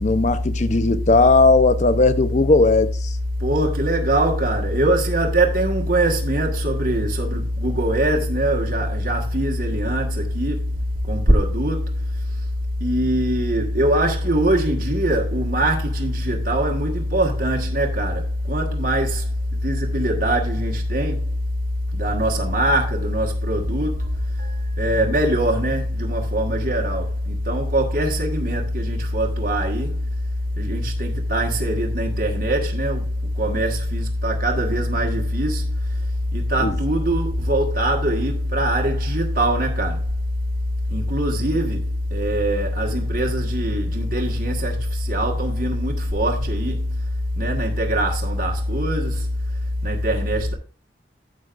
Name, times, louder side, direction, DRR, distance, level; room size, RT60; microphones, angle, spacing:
voice 1, 0.0-3.1 36.6-36.7, left 3 dB, 40° left, 0.8 m, -17 dB
voice 2, 3.4-10.6 11.1-11.9 12.8-19.3 19.6-21.2 21.9-24.1 24.4-30.0 30.6-33.0 33.4-35.7 36.3-40.0 40.9-41.8 42.1-46.9 47.4-49.2 49.8-50.5, right 1 dB, 50° right, 1.6 m, -22 dB
12.5 x 8.4 x 2.5 m
head